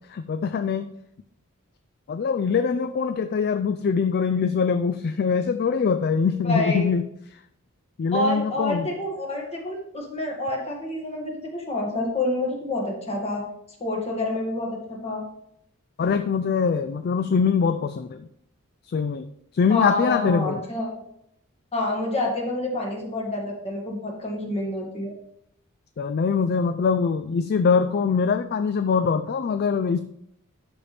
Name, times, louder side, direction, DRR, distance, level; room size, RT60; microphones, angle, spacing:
voice 1, 0.1-0.9 2.1-7.0 8.0-8.9 16.0-18.3 18.9-19.3 19.5-20.6 26.0-30.0, left 5 dB, 45° left, 9 dB, 0.3 m, -23 dB
voice 2, 6.4-6.9 8.1-13.4 13.8-15.2 19.7-21.0 21.7-25.1, left 1 dB, 30° left, -1 dB, 1.9 m, -28 dB
12.0 x 4.3 x 3.3 m, 0.74 s
head